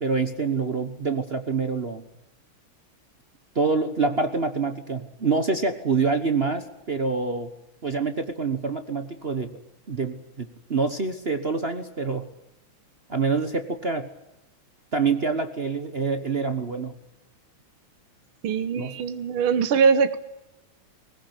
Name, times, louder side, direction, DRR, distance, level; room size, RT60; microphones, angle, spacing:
voice 1, 0.0-2.0 3.5-7.5 7.8-9.5 9.9-12.3 13.1-14.1 14.9-17.0 18.8-19.0, right 4 dB, 35° right, 8 dB, 1.1 m, -26 dB
voice 2, 18.4-20.2, right 6 dB, 70° right, 11 dB, 1.9 m, -22 dB
20.5 x 20.5 x 8.2 m, 0.95 s
omnidirectional pair, 2.4 m